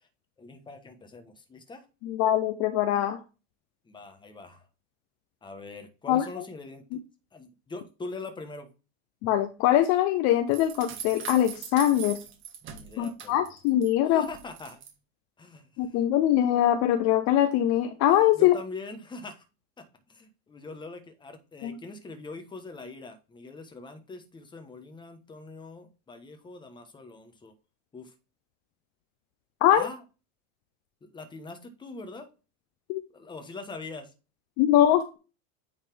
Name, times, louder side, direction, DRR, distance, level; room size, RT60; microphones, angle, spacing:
voice 1, 0.4-1.8 3.9-4.6 5.4-7.0 7.3-8.7 12.7-13.4 14.0-14.8 15.4-16.0 18.3-19.4 19.8-27.5 27.9-28.1 29.7-30.0 31.0-32.3 33.1-34.1, left 3 dB, 10° left, 7 dB, 1.1 m, -43 dB
voice 2, 2.0-3.2 6.1-6.2 9.2-12.2 13.0-14.3 15.8-18.6 21.6-21.8 29.6-29.8 32.9-33.0 34.6-35.2, left 12 dB, 45° left, 9 dB, 0.7 m, -23 dB
sound 1, 10.5-13.9 14.2-14.9, right 7 dB, 30° right, 1.5 m, -41 dB
9.2 x 4.1 x 3.4 m, 0.31 s
supercardioid pair, 145°, 39 cm